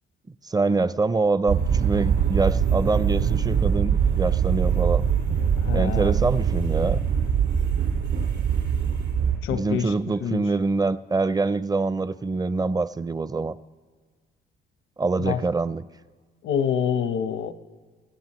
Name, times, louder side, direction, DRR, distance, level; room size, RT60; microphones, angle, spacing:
voice 1, 0.5-5.0 5.7-7.0 9.5-13.6 15.0-15.9, right 3 dB, 20° right, 0.5 m, -25 dB
sound 1, 1.5-9.4, right 7 dB, 70° right, 4.9 m, -23 dB
voice 2, 5.6-6.2 9.4-9.9 10.2-10.4 15.2-15.4 16.4-17.5, left 8 dB, 85° left, 0.9 m, -26 dB
26.5 x 17.0 x 3.1 m
cardioid pair, 90°, 20 cm